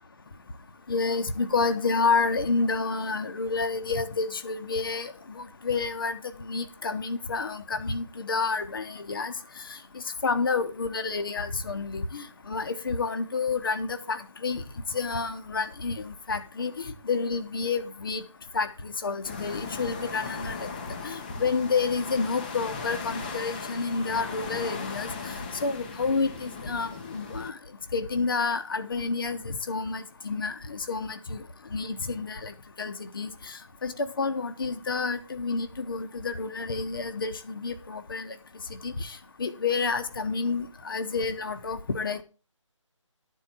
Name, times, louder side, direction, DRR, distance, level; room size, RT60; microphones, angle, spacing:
voice 1, 0.9-6.2 6.5-9.3 10.2-14.6 14.9-18.2 18.5-20.7 21.0-25.1 25.6-27.6 27.9-31.4 31.7-33.3 33.8-38.3 38.8-42.2, left 4 dB, 45° left, 1.0 m, -29 dB
sound 1, 19.2-27.5, left 4 dB, 15° left, 0.8 m, -37 dB
11.5 x 4.6 x 7.2 m
figure-of-eight pair, 155°, 16 cm